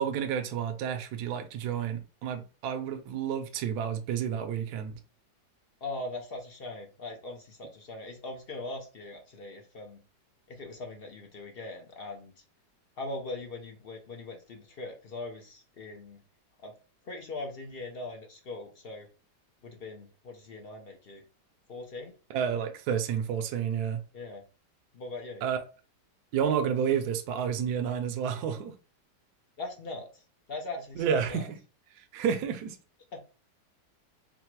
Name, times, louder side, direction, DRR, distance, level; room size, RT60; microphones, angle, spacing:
voice 1, 0.0-5.0 22.3-24.0 25.4-25.6 26.3-28.8 31.0-31.5 32.0-32.8, right 8 dB, 70° right, 1.1 m, -30 dB
voice 2, 5.8-10.0 10.5-12.3 13.0-16.2 16.6-16.7 17.1-19.1 19.6-21.2 21.7-22.1 24.1-24.4 24.9-25.4 29.6-30.2 30.5-31.5 33.1-33.3, left 2 dB, 60° left, 0.6 m, -40 dB
4.0 x 2.0 x 4.4 m
omnidirectional pair, 1.9 m